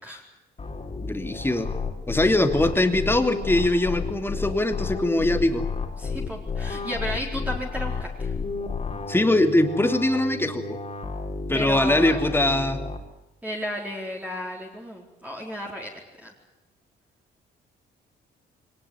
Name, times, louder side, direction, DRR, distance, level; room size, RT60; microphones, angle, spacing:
sound 1, 0.6-13.0, left 4 dB, 30° left, 4.1 m, -32 dB
voice 1, 1.0-1.7 2.1-5.6 9.1-10.8 11.5-12.8, left 1 dB, 10° left, 7 dB, 2.8 m, -22 dB
voice 2, 6.0-8.3 11.5-12.2 13.4-16.3, equal, 5° right, -2 dB, 4.4 m, -33 dB
22.5 x 19.0 x 9.7 m, 0.98 s
cardioid pair, 90°, 20 cm